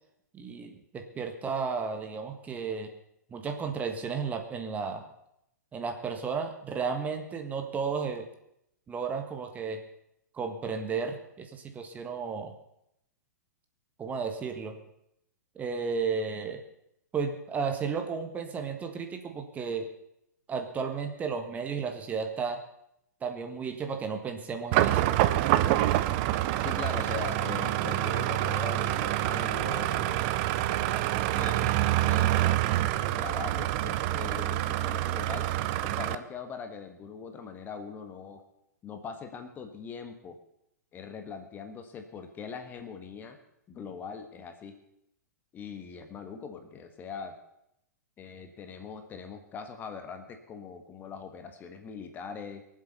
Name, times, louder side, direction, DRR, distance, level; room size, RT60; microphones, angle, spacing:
voice 1, 0.3-2.9 3.3-5.0 5.7-8.3 8.9-9.8 10.3-12.5 14.0-14.8 15.5-16.6 17.1-19.9 20.5-22.6 23.2-25.1, right 5 dB, 15° right, 5 dB, 1.4 m, -33 dB
sound 1, 24.7-36.1, right 14 dB, 35° right, 0.7 m, -27 dB
voice 2, 26.6-30.3 31.3-32.7 33.0-35.5 35.8-38.4 38.8-40.4 40.9-43.4 43.7-44.8 45.5-47.4 48.2-52.7, left 6 dB, 20° left, 7 dB, 1.5 m, -41 dB
23.0 x 7.7 x 6.8 m, 0.79 s
figure-of-eight pair, 110°, 9 cm